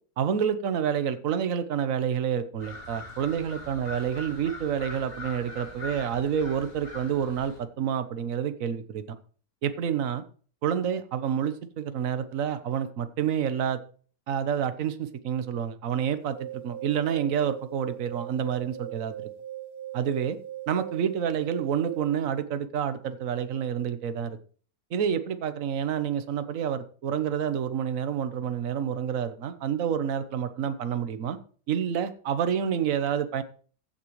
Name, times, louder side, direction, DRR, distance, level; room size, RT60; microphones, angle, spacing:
voice 1, 0.2-9.2 9.6-10.2 10.6-13.8 14.3-19.3 19.9-20.4 20.7-24.4 24.9-31.4 31.7-33.4, right 8 dB, 55° right, 11 dB, 1.3 m, -28 dB
sound 1, 2.6-7.6, left 2 dB, 35° left, 3.2 m, -42 dB
sound 2, 16.2-22.2, right 12 dB, 90° right, 2.4 m, -40 dB
15.5 x 8.8 x 3.2 m, 0.43 s
omnidirectional pair, 1.9 m